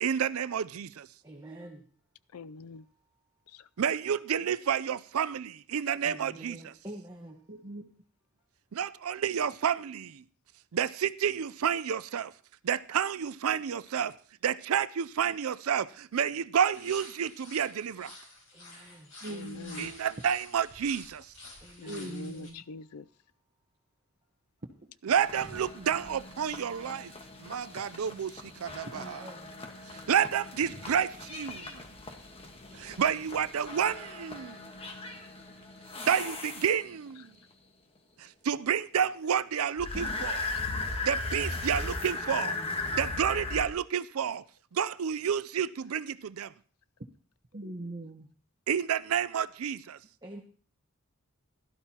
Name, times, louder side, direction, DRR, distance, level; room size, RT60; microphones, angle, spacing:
voice 1, 0.0-1.1 3.8-6.6 8.7-10.2 10.7-12.3 12.6-14.1 14.4-18.2 19.8-21.3 25.0-27.1 27.4-29.2 30.1-31.8 32.7-34.6 36.0-37.3 38.2-40.5 41.0-42.6 42.9-44.4 44.7-46.5 48.7-50.0, right 8 dB, 75° right, 0.5 m, -30 dB
voice 2, 1.2-1.9 6.0-7.5 18.5-19.2 21.6-22.2 28.9-29.5 29.8-30.1 50.2-50.4, right 1 dB, 20° right, 1.3 m, -47 dB
voice 3, 2.3-2.9 3.5-3.7 19.3-19.9 21.8-23.1, left 3 dB, 85° left, 0.5 m, -44 dB
voice 4, 7.5-7.8 19.2-19.9 21.9-22.6 47.5-48.3, right 1 dB, 40° right, 1.0 m, -40 dB
sound 1, 16.7-22.5, left 2 dB, 60° left, 5.6 m, -49 dB
sound 2, 25.2-37.1 39.8-43.7, left 3 dB, 25° left, 1.3 m, -38 dB
16.5 x 12.5 x 2.9 m
head